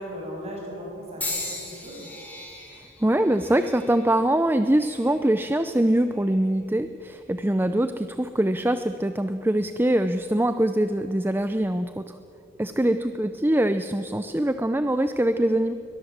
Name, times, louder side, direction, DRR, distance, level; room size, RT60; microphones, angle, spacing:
voice 1, 0.0-2.1, equal, 30° right, -2 dB, 7.4 m, -37 dB
sound 1, 1.2-5.3 6.0-6.5 7.4-7.6, left 2 dB, 10° left, 4.4 m, -38 dB
voice 2, 2.7-12.2 12.6-15.7, right 1 dB, 10° right, 10 dB, 0.5 m, -23 dB
22.5 x 20.5 x 7.4 m, 2.7 s
head